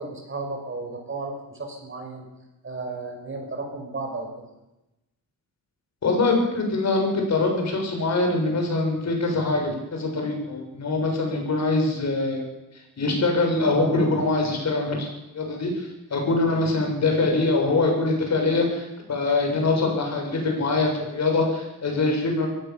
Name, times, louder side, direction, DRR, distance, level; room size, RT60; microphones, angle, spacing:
voice 1, 0.0-2.3 2.6-4.3 16.9-17.0, right 3 dB, 35° right, 3 dB, 5.5 m, -34 dB
voice 2, 6.0-12.4 13.0-22.5, left 3 dB, 50° left, 2 dB, 7.0 m, -23 dB
22.5 x 16.0 x 7.3 m, 0.97 s
cardioid pair, 125°, 34 cm